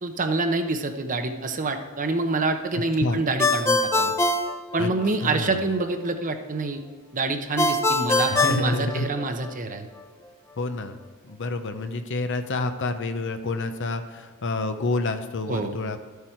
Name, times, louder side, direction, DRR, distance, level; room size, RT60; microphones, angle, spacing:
voice 1, 0.0-4.1 4.7-6.8 7.1-9.9 15.5-15.8, right 3 dB, 35° right, 6 dB, 0.9 m, -26 dB
voice 2, 2.7-3.2 4.8-4.9 5.2-5.6 8.3-9.1 10.6-11.0 11.2-16.0, left 2 dB, 60° left, 8 dB, 0.8 m, -28 dB
Ringtone, 3.4-5.3 7.6-9.5, left 2 dB, 15° left, 0.7 m, -23 dB
12.5 x 8.3 x 4.6 m, 1.5 s
head